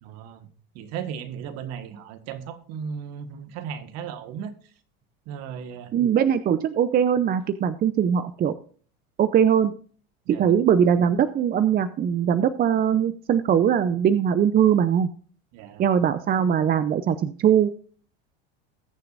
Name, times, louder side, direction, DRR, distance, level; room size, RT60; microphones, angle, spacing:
voice 1, 0.0-0.5 0.8-4.5 5.3-5.9 10.3-10.6 15.5-15.8, right 7 dB, 60° right, 10 dB, 1.7 m, -36 dB
voice 2, 5.9-8.5 9.2-9.7 10.3-15.1 15.8-17.7, right 8 dB, 30° right, 12 dB, 0.6 m, -21 dB
20.0 x 6.7 x 2.6 m, 0.43 s
supercardioid pair, 115°, 29 cm